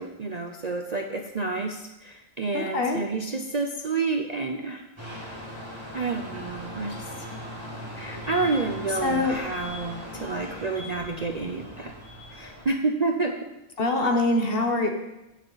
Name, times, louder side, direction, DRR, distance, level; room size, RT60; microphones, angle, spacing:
voice 1, 0.0-4.8 5.9-7.1 8.0-11.9 12.3-13.4, right 3 dB, 40° right, 3 dB, 0.6 m, -29 dB
voice 2, 2.5-3.0 9.0-9.4 13.8-14.9, left 2 dB, 45° left, 3 dB, 1.3 m, -24 dB
sound 1, 5.0-12.7, equal, 20° right, 3.0 m, -39 dB
16.0 x 6.5 x 4.0 m, 0.96 s
omnidirectional pair, 1.4 m